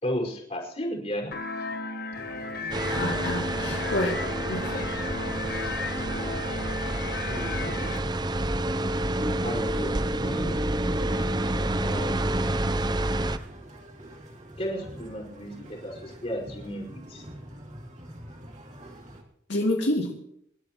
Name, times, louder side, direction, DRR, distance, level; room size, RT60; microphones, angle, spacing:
voice 1, 0.0-1.4 2.5-2.8 3.1-3.2 3.7-3.8 7.2-7.9 9.4-10.7 11.8-13.4 14.6-17.3, equal, 35° left, -1 dB, 5.2 m, -35 dB
sound 1, 1.3-8.0, left 3 dB, 55° left, 1.1 m, -34 dB
sound 2, 2.1-19.2, right 1 dB, 40° right, 2.8 m, -45 dB
sound 3, 2.7-13.4, right 1 dB, 25° right, 0.6 m, -28 dB
voice 2, 2.9-4.8 19.5-20.1, left 1 dB, 75° left, -2 dB, 2.6 m, -28 dB
27.5 x 12.5 x 3.1 m, 0.73 s
head